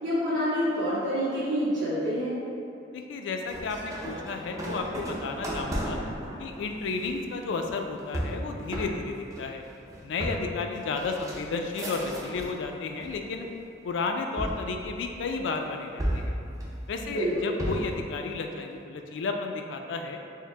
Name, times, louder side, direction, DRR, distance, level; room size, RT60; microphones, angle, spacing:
voice 1, 0.0-2.4 17.0-17.5, equal, 65° right, -10 dB, 1.3 m, -27 dB
voice 2, 2.9-6.0 6.4-9.6 10.0-13.5 13.8-16.4 16.9-20.2, left 4 dB, 70° left, 4 dB, 0.3 m, -32 dB
sound 1, 3.5-12.6 13.0-13.6 14.4-15.4 16.0-18.0, equal, 15° right, 0.4 m, -35 dB
4.4 x 2.0 x 3.5 m, 2.6 s
head